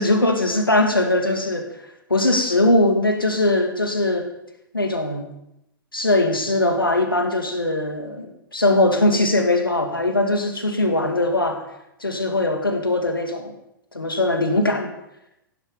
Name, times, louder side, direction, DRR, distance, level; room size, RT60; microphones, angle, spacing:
voice 1, 0.0-1.7 2.1-4.3 4.7-5.3 5.9-11.6 12.0-13.5 13.9-14.9, left 2 dB, 85° left, 5 dB, 2.4 m, -20 dB
15.5 x 12.0 x 5.1 m, 0.83 s
figure-of-eight pair, 105°, 11 cm